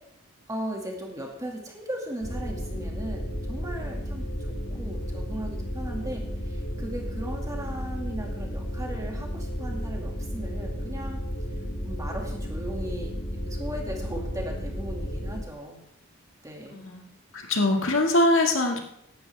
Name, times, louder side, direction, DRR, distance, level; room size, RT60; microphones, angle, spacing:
voice 1, 0.5-11.2 11.5-15.8 16.4-16.8, right 1 dB, 15° right, 0 dB, 2.1 m, -37 dB
sound 1, 2.2-15.4, equal, 35° left, 1.8 m, -33 dB
voice 2, 16.7-17.1 17.3-18.8, left 1 dB, 65° left, 2 dB, 2.0 m, -23 dB
17.0 x 11.5 x 3.5 m, 0.77 s
head